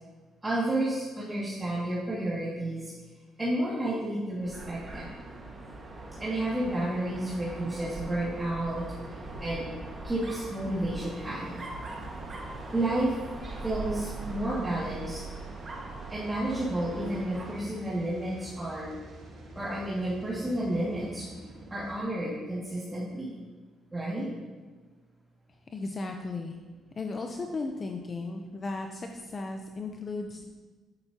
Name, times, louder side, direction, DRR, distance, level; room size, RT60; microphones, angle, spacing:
voice 1, 0.4-2.9 3.4-5.1 6.2-9.7 10.0-11.6 12.7-13.1 13.6-15.2 16.1-18.9 19.6-21.3 21.7-23.3 23.9-24.3, right 1 dB, 15° right, -8 dB, 2.1 m, -31 dB
Dog, 4.4-17.7, right 3 dB, 35° right, 1.6 m, -41 dB
sound 1, 10.8-22.0, right 1 dB, 70° right, 2.7 m, -48 dB
voice 2, 25.7-26.6 27.0-30.5, left 3 dB, 35° left, 4 dB, 0.7 m, -35 dB
10.5 x 9.0 x 2.9 m, 1.3 s
cardioid pair, 105°, 0 cm